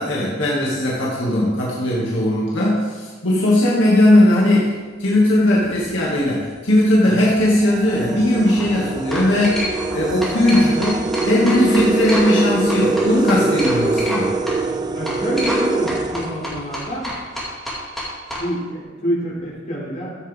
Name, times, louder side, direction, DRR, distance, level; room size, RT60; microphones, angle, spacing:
voice 1, 0.0-4.7 5.0-9.6 9.9-10.9 11.3-14.3, left 1 dB, 75° left, -6 dB, 2.3 m, -18 dB
sound 1, 5.6-5.9 6.7-6.8 7.3-17.0, right 3 dB, 20° right, 0.4 m, -24 dB
sound 2, 8.3-8.6 9.1-10.0 10.2-12.4 12.7-14.2 14.5-14.6 15.1-15.6 15.9-18.4, equal, ahead, 2.3 m, -28 dB
voice 2, 10.6-10.9 14.9-17.1 18.4-20.2, equal, 40° left, -6 dB, 3.7 m, -27 dB
13.5 x 7.9 x 3.7 m, 1.4 s
head